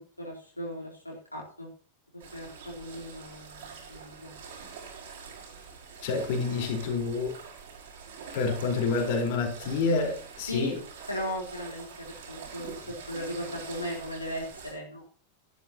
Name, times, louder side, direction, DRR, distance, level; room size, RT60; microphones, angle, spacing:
voice 1, 0.2-1.7 2.1-4.4 10.5-10.7 11.1-15.0, equal, 85° left, -3 dB, 3.7 m, -37 dB
sound 1, 2.2-14.7, right 6 dB, 60° right, 5.6 m, -45 dB
voice 2, 6.0-7.3 8.3-10.8, left 4 dB, 50° left, 1 dB, 4.3 m, -28 dB
13.5 x 12.5 x 2.9 m, 0.43 s
figure-of-eight pair, 90°, 0 cm